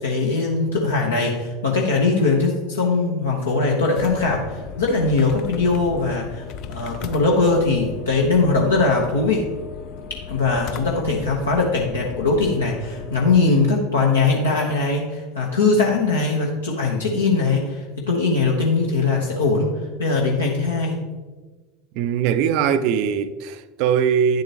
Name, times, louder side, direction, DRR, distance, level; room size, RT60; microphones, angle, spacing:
voice 1, 0.0-9.5 10.3-19.7 20.0-21.0, left 3 dB, 75° left, 1.0 m, -21 dB
sound 1, 3.9-13.4, left 7 dB, 45° left, 0.5 m, -36 dB
voice 2, 22.0-24.4, right 7 dB, 50° right, 0.5 m, -21 dB
9.4 x 7.7 x 2.9 m
figure-of-eight pair, 80°, 0 cm